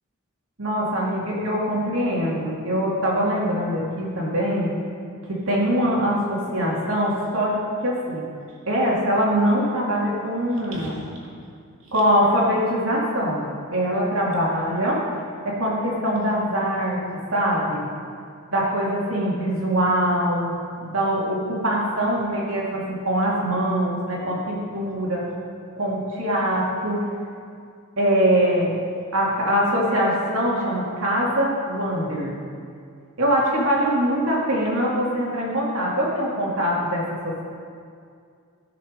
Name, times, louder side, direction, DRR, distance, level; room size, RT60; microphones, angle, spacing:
voice 1, 0.6-4.7 5.3-7.5 7.8-8.2 8.7-11.0 11.9-13.4 13.7-15.0 15.4-17.0 17.3-17.9 18.5-20.5 20.8-25.3 25.8-27.0 28.0-28.8 29.1-32.4 33.2-37.4, equal, 75° right, -4 dB, 2.4 m, -23 dB
17.5 x 6.2 x 5.1 m, 2.3 s
head